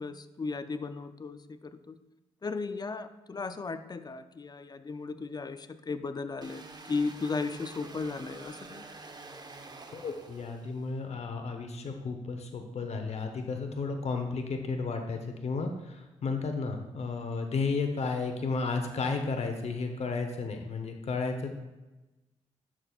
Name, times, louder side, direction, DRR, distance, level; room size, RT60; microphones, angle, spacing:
voice 1, 0.0-2.0 2.4-8.9, left 4 dB, 35° left, 11 dB, 0.5 m, -36 dB
sound 1, 6.4-11.0, right 3 dB, 35° right, 0.7 m, -47 dB
voice 2, 9.9-21.6, left 4 dB, 65° left, 5 dB, 0.9 m, -33 dB
11.0 x 6.1 x 2.4 m, 1.1 s
cardioid pair, 65°, 12 cm